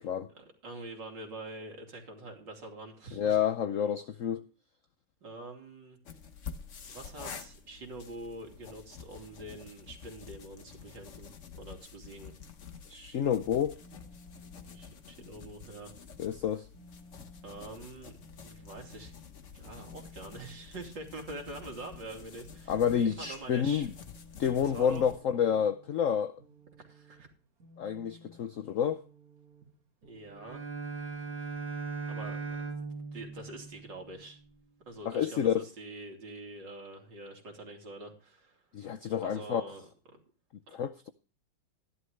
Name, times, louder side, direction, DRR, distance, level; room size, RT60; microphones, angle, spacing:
voice 1, 0.3-3.4 5.2-6.0 6.9-12.3 14.7-15.9 17.4-18.1 18.4-19.1 19.5-22.8 23.2-23.9 24.6-25.0 26.8-27.3 30.0-30.6 32.1-32.7 33.1-34.4 34.9-38.6 39.2-39.9, right 2 dB, 65° right, 3.4 m, -45 dB
voice 2, 3.1-4.4 12.9-13.7 16.2-16.7 22.7-23.9 24.4-26.3 27.8-29.0 35.1-35.6 38.7-39.6 40.7-41.1, left 8 dB, 85° left, 0.7 m, -29 dB
sound 1, 6.1-25.2, left 6 dB, 45° left, 1.3 m, -49 dB
sound 2, 13.8-30.5, left 1 dB, 50° right, 2.0 m, -57 dB
Bowed string instrument, 30.3-34.4, right 4 dB, 85° right, 3.9 m, -39 dB
14.0 x 11.5 x 3.2 m
omnidirectional pair, 2.1 m